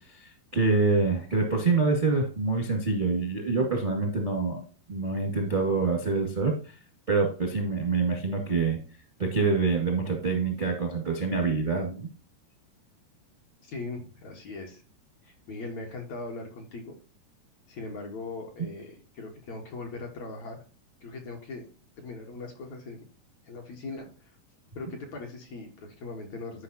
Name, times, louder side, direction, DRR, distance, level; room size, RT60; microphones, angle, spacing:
voice 1, 0.0-4.6 4.9-6.7 7.1-8.8 9.2-12.1, right 4 dB, 25° right, 2 dB, 0.9 m, -26 dB
voice 2, 13.6-14.8 15.2-16.9 17.7-20.6 21.0-21.7 22.0-23.0 23.4-24.3 24.7-26.6, left 3 dB, 55° left, 1 dB, 2.2 m, -40 dB
12.0 x 5.3 x 2.8 m, 0.38 s
omnidirectional pair, 4.7 m